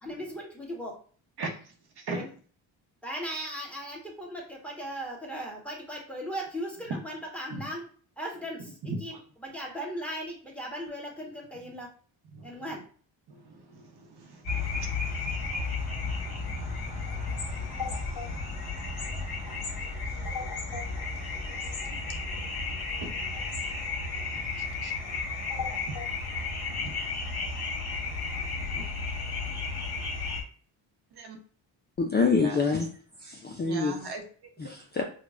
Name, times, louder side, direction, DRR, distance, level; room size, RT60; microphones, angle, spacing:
voice 1, 0.0-0.9 2.1-2.3 3.0-7.8 8.2-9.1 9.4-11.9 12.4-12.8, equal, 5° left, -1 dB, 1.4 m, -37 dB
voice 2, 1.4-2.2 6.9-7.0 7.5-7.6 8.9-9.2 12.3-12.7 13.3-15.1 15.7-16.1 16.4-18.4 19.5-19.8 20.1-20.4 20.7-20.8 21.8-22.0 23.0-23.1 24.8-24.9 25.5-25.6 26.7-27.0 28.7-28.9 31.1-31.4 32.3-32.6 33.7-34.7, right 3 dB, 55° right, 3 dB, 1.0 m, -41 dB
sound 1, 14.5-30.4, left 4 dB, 50° left, 1.5 m, -33 dB
voice 3, 32.0-32.9 33.2-33.9 34.6-35.0, left 4 dB, 20° left, 3 dB, 0.4 m, -26 dB
5.0 x 2.3 x 2.5 m, 0.44 s
cardioid pair, 75°, 48 cm